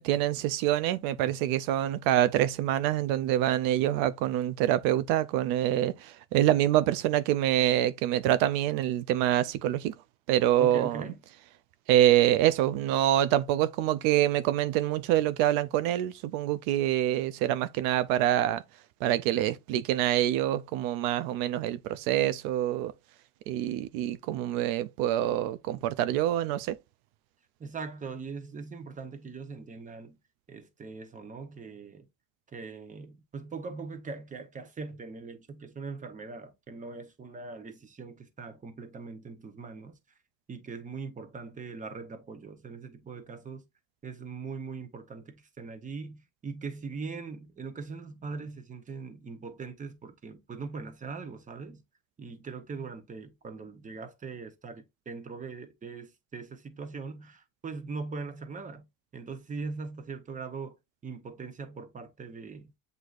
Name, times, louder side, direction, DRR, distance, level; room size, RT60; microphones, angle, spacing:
voice 1, 0.0-9.9 10.3-11.0 11.9-18.6 19.0-22.9 23.5-26.8, right 12 dB, 85° right, 0.5 m, -26 dB
voice 2, 10.6-11.2 27.6-30.2 30.5-32.1 32.5-40.0 40.5-43.6 44.0-51.8 52.2-58.9 59.1-60.8 61.0-62.7, right 4 dB, 20° right, 0.9 m, -41 dB
7.9 x 2.7 x 2.4 m
cardioid pair, 120°, 35 cm